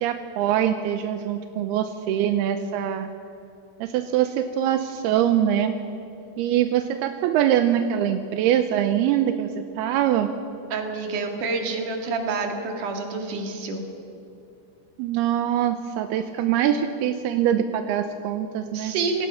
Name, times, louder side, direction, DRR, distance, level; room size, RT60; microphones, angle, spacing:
voice 1, 0.0-3.1 3.8-5.7 6.4-10.3 15.0-18.9, right 10 dB, 80° right, 8 dB, 2.4 m, -23 dB
voice 2, 10.7-13.8 18.7-19.3, right 4 dB, 50° right, 3 dB, 3.2 m, -28 dB
26.0 x 18.5 x 5.7 m, 2.7 s
omnidirectional pair, 5.3 m